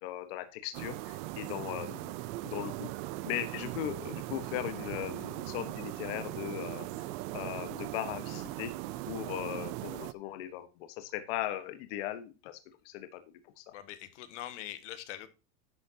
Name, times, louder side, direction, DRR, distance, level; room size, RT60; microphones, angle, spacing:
voice 1, 0.0-2.1 2.4-2.9 3.2-6.9 7.3-8.7 9.0-12.6 12.8-13.2 13.6-13.7, left 13 dB, 55° left, 1.3 m, -38 dB
sound 1, 0.7-10.1, right 17 dB, 40° right, 0.6 m, -39 dB
voice 2, 13.7-15.3, left 12 dB, 80° left, 1.7 m, -43 dB
11.5 x 8.6 x 2.8 m
supercardioid pair, 170°, 35 cm